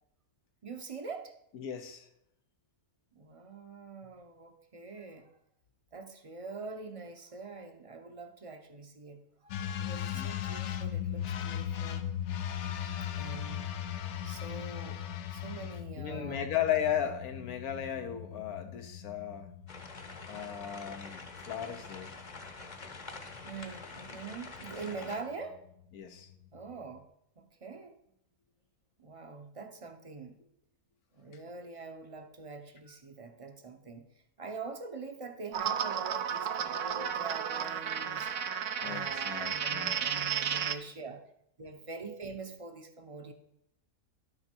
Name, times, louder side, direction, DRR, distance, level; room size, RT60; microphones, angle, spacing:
voice 1, 0.6-1.3 3.1-5.3 5.9-12.0 13.2-16.5 23.4-25.6 26.5-27.1 27.4-27.9 29.0-30.4 31.1-34.1 34.4-38.3 38.8-41.2 41.6-43.3, right 4 dB, 30° right, 6 dB, 0.8 m, -44 dB
voice 2, 1.5-2.1 10.1-10.3 16.0-19.5 20.3-22.1 24.8-25.0 25.9-26.3 38.8-40.0, left 9 dB, 80° left, 7 dB, 1.5 m, -36 dB
sound 1, 9.5-27.0, left 10 dB, 60° left, 0.8 m, -39 dB
sound 2, 19.7-25.2, left 3 dB, 35° left, 1.0 m, -46 dB
sound 3, 35.5-40.7, right 8 dB, 65° right, 0.9 m, -33 dB
11.5 x 6.6 x 4.5 m, 0.77 s
omnidirectional pair, 1.5 m